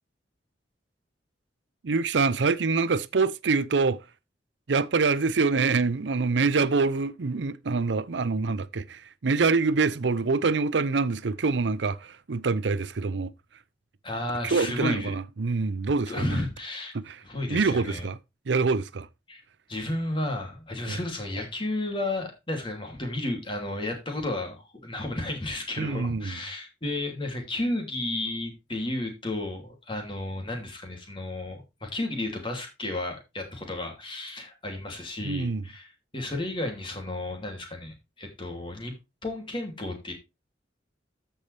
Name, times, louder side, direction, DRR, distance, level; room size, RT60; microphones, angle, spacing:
voice 1, 1.8-4.0 4.7-13.3 14.4-16.4 16.9-17.2 17.5-18.2 18.5-19.1 20.9-21.0 25.8-26.4 35.2-35.6, right 4 dB, 90° right, 0.6 m, -25 dB
voice 2, 14.0-15.1 16.1-16.9 17.2-18.1 19.3-19.4 19.7-38.9 39.2-40.1, left 2 dB, 30° left, 2.8 m, -33 dB
14.0 x 5.6 x 3.4 m
head